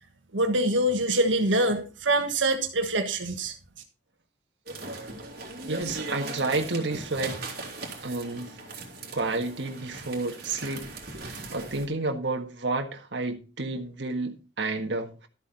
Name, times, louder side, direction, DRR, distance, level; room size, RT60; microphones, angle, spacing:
voice 1, 0.3-3.5, right 1 dB, 85° right, 1.5 m, -24 dB
sound 1, 4.7-11.9, right 3 dB, 55° right, 3.2 m, -39 dB
voice 2, 5.7-7.4 8.0-8.6 9.1-10.9 11.2-15.3, right 3 dB, 70° right, 1.6 m, -30 dB
12.5 x 8.3 x 4.1 m
head